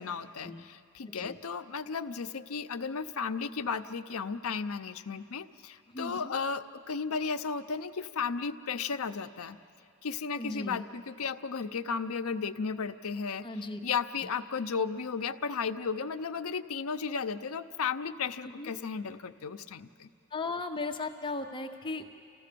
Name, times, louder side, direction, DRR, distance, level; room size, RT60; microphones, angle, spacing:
voice 1, 0.0-9.6 10.0-13.4 13.8-20.1, left 5 dB, 70° left, 8 dB, 0.6 m, -34 dB
voice 2, 5.9-6.3 10.4-10.8 13.4-13.8 18.4-18.7 20.3-22.0, left 3 dB, 20° left, 5 dB, 0.7 m, -36 dB
29.5 x 14.5 x 6.8 m, 2.6 s
head